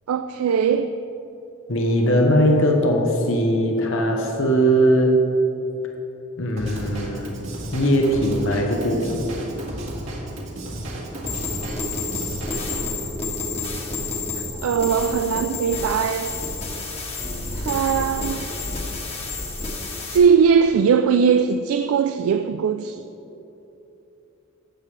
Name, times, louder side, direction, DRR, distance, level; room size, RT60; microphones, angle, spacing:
voice 1, 0.1-0.9 14.6-16.4 17.5-18.5 20.1-23.0, right 6 dB, 75° right, 0.3 m, -20 dB
voice 2, 1.7-5.2 6.4-7.3 7.7-9.2, equal, 60° left, 0.9 m, -20 dB
Drum kit / Drum, 6.6-12.8, right 1 dB, 60° right, 1.8 m, -33 dB
sound 1, 11.3-20.2, left 3 dB, 30° left, 1.4 m, -30 dB
13.0 x 8.3 x 3.3 m
head